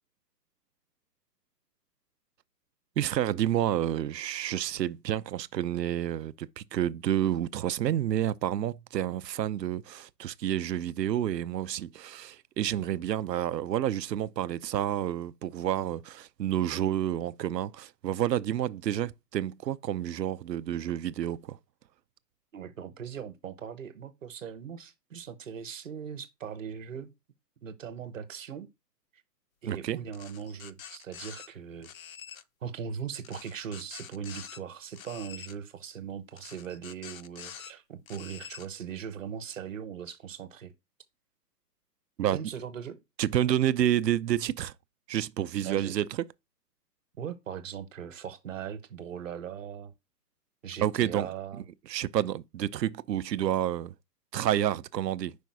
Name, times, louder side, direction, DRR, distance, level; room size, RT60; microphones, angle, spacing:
voice 1, 3.0-21.6 29.7-30.0 42.2-42.4 43.2-44.7 45.1-46.2 50.8-51.3 51.9-53.9 54.3-55.4, right 11 dB, 85° right, 0.6 m, -29 dB
voice 2, 22.5-27.1 27.6-28.7 29.6-31.9 32.6-40.7 42.3-43.0 45.6-45.9 47.2-49.9 50.6-51.6, right 8 dB, 50° right, 1.1 m, -39 dB
sound 1, 30.1-31.5 31.8-32.4 33.2-34.6 34.9-35.6 36.4-37.7 38.1-38.7, left 8 dB, 60° left, 0.6 m, -46 dB
5.2 x 4.6 x 4.6 m
hypercardioid pair, 175°, 49 cm